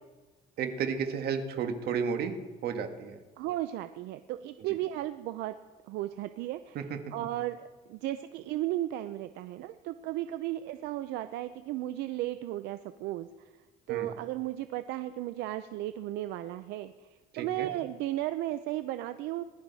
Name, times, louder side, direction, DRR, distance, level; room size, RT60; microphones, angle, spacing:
voice 1, 0.6-2.4 2.6-3.2 6.7-7.0 13.9-14.1 17.3-17.7, right 6 dB, 70° right, 6 dB, 1.6 m, -32 dB
voice 2, 3.4-5.5 5.8-13.3 13.9-19.4, right 14 dB, 90° right, 11 dB, 0.5 m, -35 dB
20.0 x 11.5 x 4.1 m, 1.2 s
cardioid pair, 110°, 17 cm